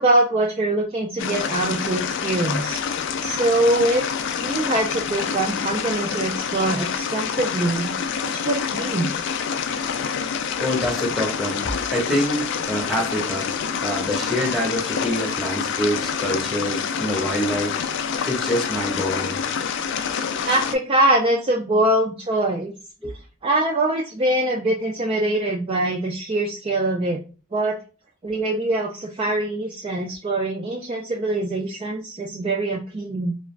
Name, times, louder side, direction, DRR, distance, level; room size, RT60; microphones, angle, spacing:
voice 1, 0.0-2.8 3.2-4.1 4.4-7.9 8.3-9.1 20.4-22.7 23.4-27.2 27.5-27.8 28.2-33.4, right 1 dB, 25° right, -1 dB, 0.3 m, -23 dB
sound 1, 1.2-20.7, left 7 dB, 60° left, 0.3 m, -27 dB
voice 2, 10.6-13.5 13.8-17.8 18.2-19.4 23.0-23.1, equal, ahead, -1 dB, 0.8 m, -26 dB
2.4 x 2.3 x 3.1 m, 0.35 s
head